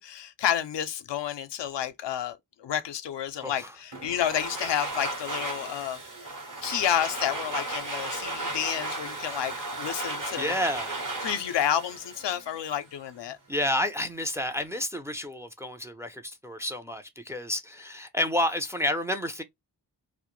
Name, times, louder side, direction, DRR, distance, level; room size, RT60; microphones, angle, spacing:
voice 1, 0.0-6.0 6.6-10.6 11.2-13.4, left 10 dB, 75° left, 0.5 m, -30 dB
Domestic sounds home sounds, 3.9-12.8, right 2 dB, 45° right, 0.9 m, -35 dB
voice 2, 10.4-11.0 13.5-19.4, left 1 dB, 5° right, 0.4 m, -30 dB
2.1 x 2.1 x 3.0 m
cardioid pair, 45°, 43 cm